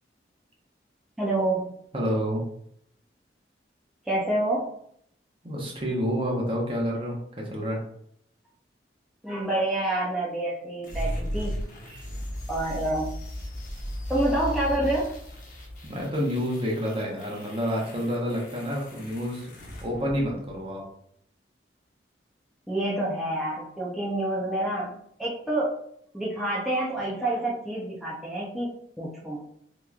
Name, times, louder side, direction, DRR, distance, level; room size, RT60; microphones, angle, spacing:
voice 1, 1.2-1.7 4.1-4.7 9.2-11.6 12.5-13.1 14.1-15.1 22.7-25.8 26.1-29.4, right 1 dB, ahead, -7 dB, 0.5 m, -28 dB
voice 2, 1.9-2.4 5.4-7.2 7.5-7.8 15.9-19.5 19.8-20.8, equal, 30° right, -2 dB, 0.8 m, -28 dB
sound 1, 10.8-20.8, equal, 45° left, 0.8 m, -36 dB
3.5 x 2.9 x 2.4 m, 0.69 s
head